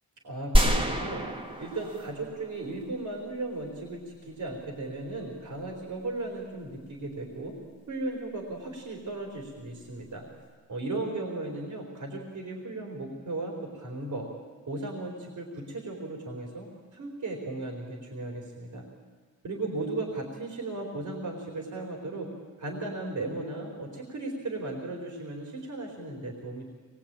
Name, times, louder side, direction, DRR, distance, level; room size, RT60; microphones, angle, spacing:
voice 1, 0.2-1.2 1.6-7.5 7.9-10.2 10.7-14.3 14.7-18.8 19.4-22.3 22.6-26.7, right 2 dB, 70° right, -1 dB, 4.2 m, -36 dB
sound 1, 0.5-2.8, equal, 15° right, 2.2 m, -26 dB
25.0 x 21.0 x 9.0 m, 1.5 s
cardioid pair, 80°, 31 cm